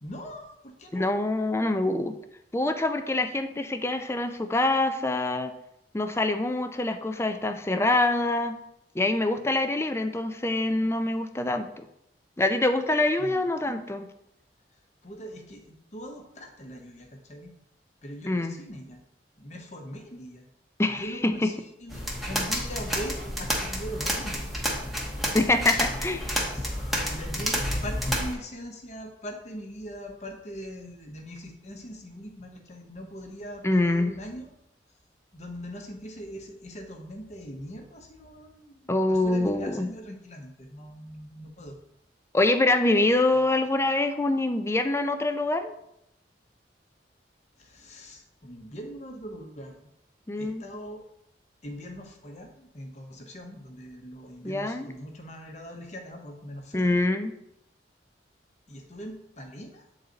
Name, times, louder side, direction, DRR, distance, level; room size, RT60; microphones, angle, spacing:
voice 1, 0.0-1.2 13.2-13.4 15.0-17.5 18.0-19.0 19.4-20.5 20.9-24.4 25.2-25.5 26.4-34.5 35.3-41.8 43.3-43.4 47.6-49.8 50.4-51.0 51.6-57.0 58.7-59.9, equal, 40° left, 3 dB, 1.0 m, -41 dB
voice 2, 0.9-2.2 2.5-5.5 5.9-8.6 8.9-11.8 12.4-14.1 18.3-18.5 20.8-21.5 25.3-26.3 33.6-34.1 38.9-39.9 42.3-45.7 50.3-50.6 54.4-54.9 56.7-57.3, left 2 dB, 15° left, 8 dB, 0.4 m, -25 dB
sound 1, 21.9-28.3, equal, ahead, 1.0 m, -30 dB
7.8 x 4.0 x 4.0 m, 0.79 s
head